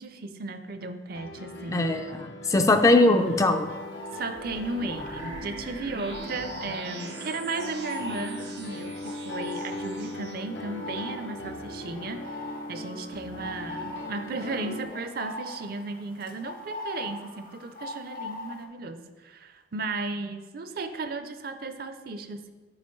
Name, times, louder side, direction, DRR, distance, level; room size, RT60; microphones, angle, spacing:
voice 1, 0.0-2.0 4.1-22.5, right 3 dB, 55° right, 9 dB, 0.5 m, -35 dB
Piano, 1.1-14.9, left 1 dB, 85° left, 0.7 m, -40 dB
voice 2, 1.7-3.7, left 2 dB, 20° left, 6 dB, 0.3 m, -21 dB
sound 1, 2.8-18.6, left 2 dB, 50° left, 0.9 m, -42 dB
sound 2, 4.3-10.3, right 3 dB, 85° right, 1.4 m, -43 dB
8.6 x 5.4 x 3.1 m, 1.3 s
head